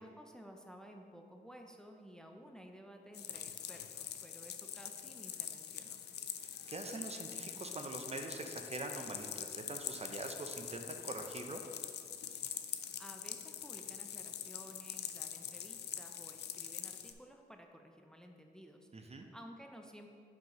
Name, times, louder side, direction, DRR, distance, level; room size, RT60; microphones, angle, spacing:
voice 1, 0.0-6.0 12.6-20.1, equal, 5° left, 3 dB, 0.6 m, -55 dB
sound 1, 3.1-17.1, left 9 dB, 80° left, 0.4 m, -44 dB
voice 2, 6.4-11.6 18.9-19.3, right 2 dB, 40° right, 5 dB, 0.7 m, -44 dB
7.7 x 5.5 x 3.1 m, 2.3 s
cardioid pair, 50°, 17 cm